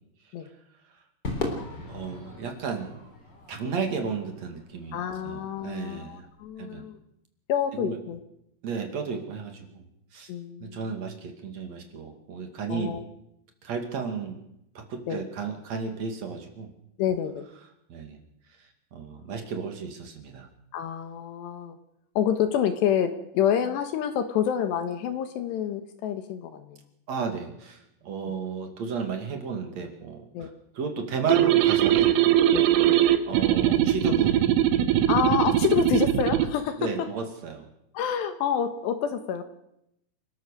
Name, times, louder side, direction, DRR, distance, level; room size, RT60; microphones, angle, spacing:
Crowd / Fireworks, 1.2-5.7, left 2 dB, 25° left, 3.6 m, -38 dB
voice 1, 1.8-3.0 3.5-6.3 6.6-6.9 7.7-8.0 8.6-9.8 10.1-10.3 10.6-12.9 13.6-14.4 14.7-16.7 17.9-18.2 18.6-20.5 27.1-30.5 30.7-32.1 33.3-34.5 36.8-37.7, right 5 dB, 45° right, 4 dB, 2.7 m, -33 dB
voice 2, 4.9-7.0 7.5-8.2 10.3-10.9 12.7-13.0 15.1-15.2 17.0-17.5 20.7-21.8 22.2-26.8 30.3-30.5 32.5-32.7 35.1-37.1 37.9-39.4, left 9 dB, 70° left, 8 dB, 3.0 m, -28 dB
sound 1, 31.3-36.5, right 12 dB, 80° right, 3.7 m, -21 dB
30.0 x 13.0 x 6.7 m, 0.81 s
omnidirectional pair, 5.8 m